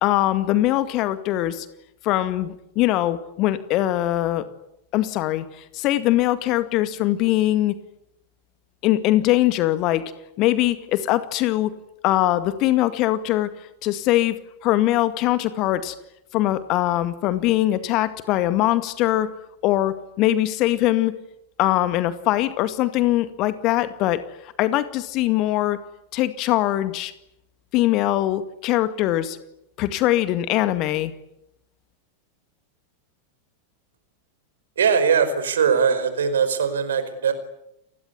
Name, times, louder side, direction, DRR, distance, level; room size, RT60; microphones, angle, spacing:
voice 1, 0.0-1.7 2.0-4.5 4.9-5.5 5.7-7.7 8.8-10.1 10.4-11.7 12.0-13.5 13.8-15.9 16.3-19.3 19.6-21.1 21.6-24.2 24.6-25.8 26.1-27.1 27.7-29.4 29.8-31.1, left 15 dB, 40° left, 12 dB, 2.1 m, -22 dB
voice 2, 34.8-37.3, right 6 dB, 65° right, 11 dB, 4.9 m, -20 dB
29.5 x 21.0 x 9.6 m, 0.83 s
figure-of-eight pair, 90°, 0 cm